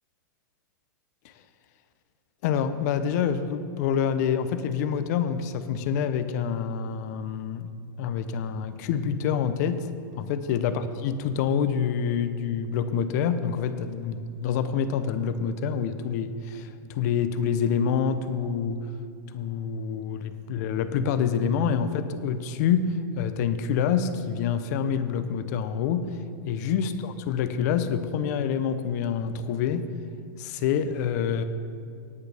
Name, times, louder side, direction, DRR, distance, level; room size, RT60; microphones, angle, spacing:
voice 1, 2.4-7.7 8.0-9.9 10.2-18.9 19.3-26.2 26.5-29.9 30.4-31.4, left 7 dB, 50° left, 10 dB, 0.8 m, -27 dB
18.0 x 8.7 x 3.5 m, 2.4 s
hypercardioid pair, 140°, 11 cm